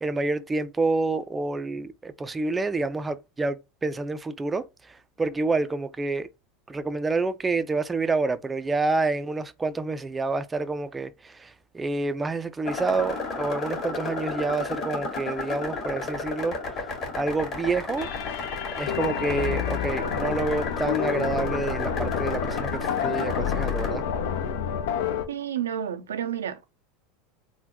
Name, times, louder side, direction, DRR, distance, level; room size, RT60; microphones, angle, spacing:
voice 1, 0.0-6.3 6.7-16.8 17.1-18.1 18.8-24.0, right 3 dB, 15° right, 0.3 m, -28 dB
sound 1, 12.6-23.9, left 3 dB, 45° left, 1.7 m, -33 dB
sound 2, 18.0-25.2, left 8 dB, 75° left, 0.5 m, -29 dB
voice 2, 25.3-26.7, right 9 dB, 85° right, 0.4 m, -30 dB
3.7 x 2.1 x 2.8 m
hypercardioid pair, 90°, 0 cm